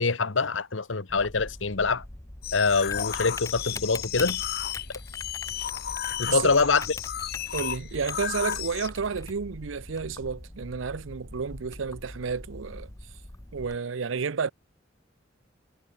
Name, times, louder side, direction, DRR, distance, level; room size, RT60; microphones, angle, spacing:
voice 1, 0.0-2.0 2.5-4.4 6.2-6.8, left 4 dB, 80° left, 1.3 m, -24 dB
Typing, 1.1-13.7, left 2 dB, 15° left, 1.0 m, -42 dB
sound 1, 2.4-8.9, left 11 dB, 55° left, 0.6 m, -33 dB
voice 2, 6.3-6.6 7.5-12.9 13.5-14.5, right 5 dB, 90° right, 0.6 m, -31 dB
head